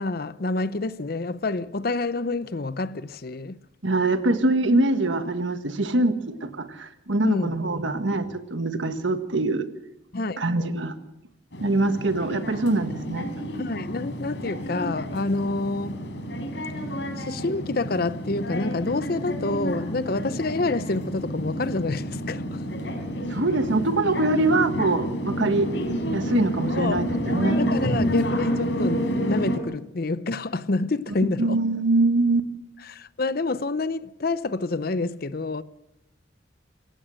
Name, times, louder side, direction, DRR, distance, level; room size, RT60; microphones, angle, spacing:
voice 1, 0.0-3.6 7.2-7.6 10.1-10.4 13.5-16.1 17.2-22.6 26.8-27.0 27.6-31.6 32.8-35.6, left 3 dB, 50° left, 0.7 m, -28 dB
voice 2, 3.8-9.7 10.4-10.9 11.6-13.3 23.3-25.7 26.1-27.6 31.4-32.5, right 2 dB, 75° right, 1.6 m, -23 dB
sound 1, 11.5-29.6, equal, 65° left, 4.1 m, -29 dB
27.0 x 16.0 x 6.4 m
head